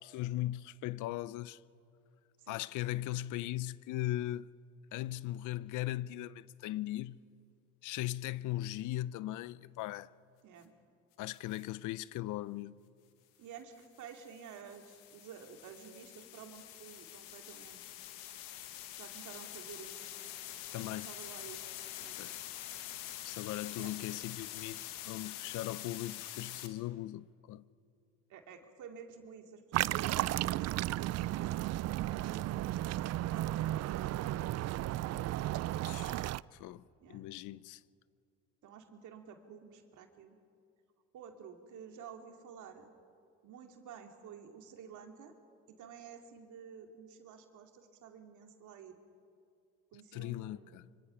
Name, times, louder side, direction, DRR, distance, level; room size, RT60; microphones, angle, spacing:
voice 1, 0.0-1.6 2.5-4.5 4.9-7.2 7.8-10.1 11.2-12.8 20.7-21.1 22.2-22.4 23.2-27.6 35.8-37.8 50.1-50.8, left 15 dB, 75° left, 0.6 m, -39 dB
sound 1, 11.3-11.6 13.8-26.7, left 12 dB, 90° left, 1.5 m, -46 dB
voice 2, 13.4-17.8 18.9-20.1 20.8-21.6 22.0-22.2 23.8-23.9 28.3-32.4 32.9-34.9 37.0-37.2 38.6-40.4 41.1-42.9 43.4-45.3 45.7-49.0 49.9-50.8, right 7 dB, 70° right, 2.5 m, -51 dB
sound 2, 29.7-36.4, right 15 dB, 55° right, 0.4 m, -34 dB
25.0 x 24.5 x 5.8 m
supercardioid pair, 65°, 31 cm